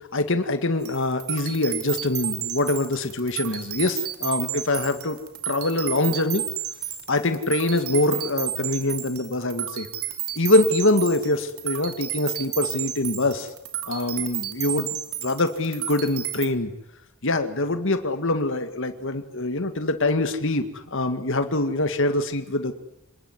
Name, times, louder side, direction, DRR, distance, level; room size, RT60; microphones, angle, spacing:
voice 1, 0.1-6.4 7.1-9.9 10.4-13.5 13.9-15.0 15.2-16.7 17.2-22.7, left 2 dB, 60° left, 8 dB, 2.1 m, -24 dB
sound 1, 0.8-16.5, right 12 dB, 90° right, 2.7 m, -32 dB
26.5 x 20.0 x 9.9 m, 0.88 s
head